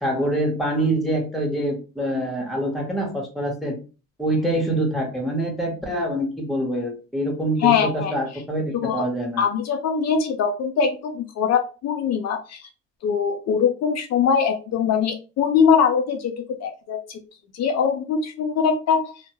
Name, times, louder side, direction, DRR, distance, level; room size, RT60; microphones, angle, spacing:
voice 1, 0.0-3.7 4.2-9.4, right 1 dB, ahead, 1 dB, 0.8 m, -25 dB
voice 2, 7.6-8.1 8.8-9.1 9.4-12.7 13.0-17.2 17.5-19.1, left 6 dB, 60° left, 5 dB, 0.4 m, -22 dB
2.2 x 2.0 x 2.8 m, 0.34 s
cardioid pair, 90°, 30 cm